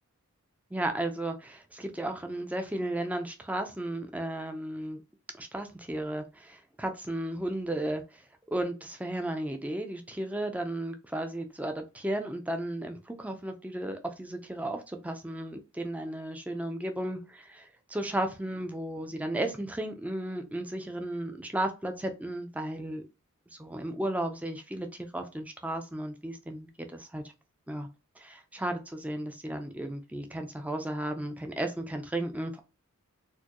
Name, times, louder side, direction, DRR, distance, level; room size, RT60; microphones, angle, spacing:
voice 1, 0.7-5.0 5.4-8.2 8.5-23.0 23.6-27.2 27.7-27.9 28.2-32.6, right 1 dB, 5° right, 0.4 m, -34 dB
4.3 x 2.2 x 2.9 m
head